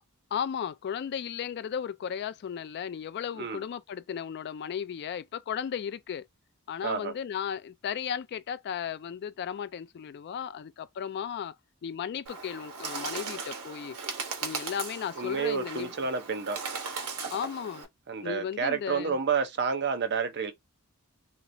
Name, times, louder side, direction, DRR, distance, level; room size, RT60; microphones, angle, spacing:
voice 1, 0.3-6.2 6.7-11.5 11.8-14.0 14.4-15.9 17.3-17.9 18.2-19.2, left 8 dB, 50° left, 0.3 m, -35 dB
voice 2, 6.8-7.1 15.2-16.8 18.1-20.5, right 5 dB, 50° right, 0.6 m, -30 dB
Bird, 12.3-17.9, right 5 dB, 85° right, 1.1 m, -38 dB
3.2 x 2.9 x 2.6 m
head